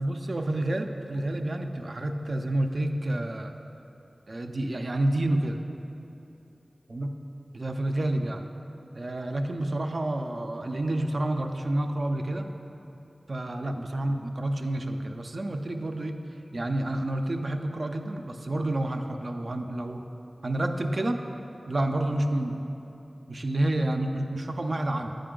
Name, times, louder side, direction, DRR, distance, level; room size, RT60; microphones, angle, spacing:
voice 1, 0.0-3.5 4.3-5.6 6.9-7.1 7.5-8.5 8.9-12.5 13.3-16.2 16.5-20.0 20.4-21.2 21.7-22.7 23.3-25.2, right 1 dB, 60° right, 5 dB, 0.4 m, -29 dB
8.6 x 5.1 x 3.8 m, 3.0 s
wide cardioid pair, 60°, 0 cm